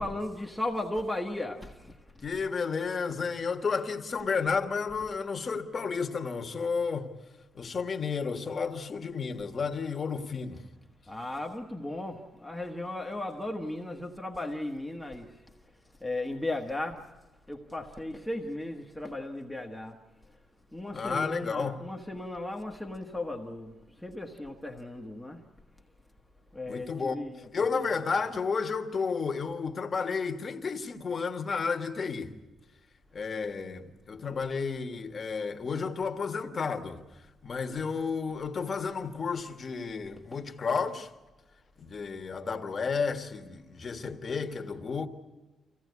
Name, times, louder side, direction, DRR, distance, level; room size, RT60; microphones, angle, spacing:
voice 1, 0.0-2.2 10.5-10.7 11.1-17.1 17.5-20.4 20.7-25.4 26.5-28.2 34.3-34.7 40.3-40.4, left 1 dB, 5° left, 1.4 m, -36 dB
voice 2, 2.2-7.1 7.5-10.6 20.9-21.8 26.7-27.1 27.5-32.3 33.1-37.0 37.4-41.1 41.8-45.1, left 5 dB, 40° left, 1.6 m, -32 dB
25.0 x 16.5 x 9.5 m
cardioid pair, 125°, 0 cm